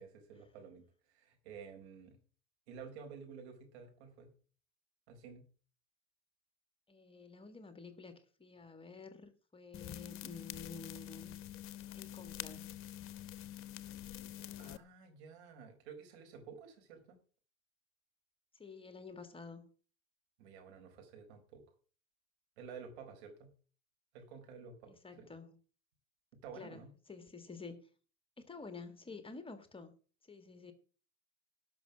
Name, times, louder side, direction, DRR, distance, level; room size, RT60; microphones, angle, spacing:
voice 1, 0.0-2.2 2.7-4.3 5.1-5.4 14.6-17.2 20.4-21.6 22.6-23.5 24.1-25.3 26.4-26.9, right 6 dB, 65° right, 4.6 m, -52 dB
voice 2, 6.9-11.4 11.9-12.7 18.5-19.7 24.9-25.6 26.5-27.9 28.4-29.9 30.2-30.7, left 4 dB, 15° left, 1.8 m, -50 dB
sound 1, 9.7-14.8, left 12 dB, 35° left, 1.0 m, -46 dB
12.0 x 6.1 x 8.1 m
hypercardioid pair, 85°, 35 cm